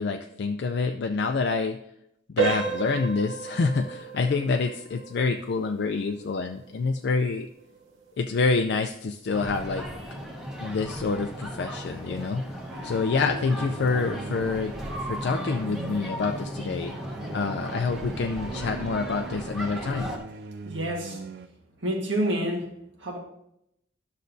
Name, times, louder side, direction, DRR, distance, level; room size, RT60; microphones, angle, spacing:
voice 1, 0.0-1.8 2.3-7.5 8.2-9.9 10.6-12.4 12.8-14.7 15.0-16.9 17.3-20.1, left 4 dB, 55° left, 5 dB, 0.4 m, -27 dB
sound 1, 2.4-13.0 13.4-13.6 14.2-14.3 14.8-15.0, right 5 dB, 85° right, 1.1 m, -36 dB
sound 2, 9.3-20.2, equal, ahead, 1.0 m, -36 dB
sound 3, 12.7-21.5, right 4 dB, 50° right, 0.3 m, -41 dB
voice 2, 20.6-21.2 21.8-23.2, right 1 dB, 70° right, 1 dB, 1.5 m, -29 dB
11.5 x 6.5 x 2.6 m, 0.79 s
head